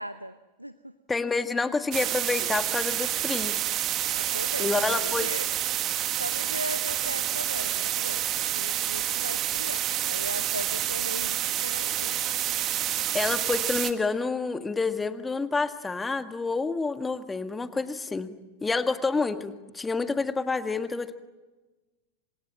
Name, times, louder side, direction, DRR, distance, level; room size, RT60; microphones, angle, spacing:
voice 1, 0.0-0.9 4.2-5.5 6.1-8.2 8.5-12.2, right 1 dB, 90° right, 14 dB, 0.8 m, -38 dB
voice 2, 1.1-3.5 4.6-5.3 13.1-18.3 18.6-21.1, left 4 dB, 10° left, 9 dB, 1.8 m, -28 dB
sound 1, 1.9-13.9, right 12 dB, 35° right, 1.9 m, -28 dB
29.0 x 26.5 x 7.6 m, 1.2 s
figure-of-eight pair, 90°, 0 cm